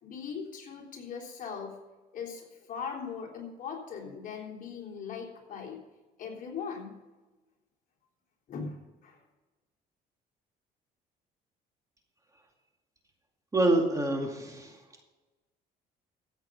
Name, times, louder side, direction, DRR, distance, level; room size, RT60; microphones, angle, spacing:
voice 1, 0.0-1.8 2.1-5.8 6.2-7.0 8.5-9.2, left 6 dB, 55° left, -1 dB, 3.5 m, -40 dB
voice 2, 13.5-14.7, right 2 dB, 20° right, 2 dB, 2.3 m, -26 dB
14.5 x 8.0 x 5.5 m, 1.2 s
cardioid pair, 110°, 17 cm